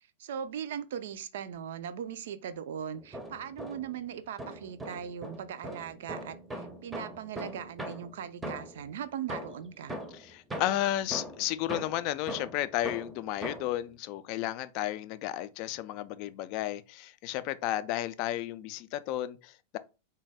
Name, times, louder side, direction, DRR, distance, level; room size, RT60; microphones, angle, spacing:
voice 1, 0.2-9.9, right 8 dB, 60° right, 0.4 m, -39 dB
sound 1, 2.9-4.0 4.4-8.9 9.3-13.8, right 1 dB, 10° right, 0.6 m, -41 dB
voice 2, 10.1-19.8, left 13 dB, 45° left, 0.3 m, -33 dB
3.8 x 2.2 x 3.4 m
figure-of-eight pair, 90°, 0 cm